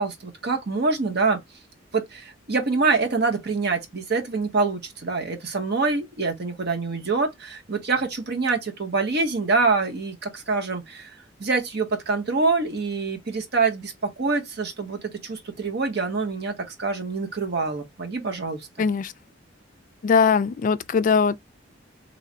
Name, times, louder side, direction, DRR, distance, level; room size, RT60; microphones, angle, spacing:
voice 1, 0.0-1.4 1.9-11.1 11.4-18.9, right 4 dB, 60° right, 1.0 m, -25 dB
voice 2, 18.8-19.1 20.0-21.4, left 5 dB, 45° left, 0.3 m, -20 dB
3.2 x 2.2 x 3.8 m
head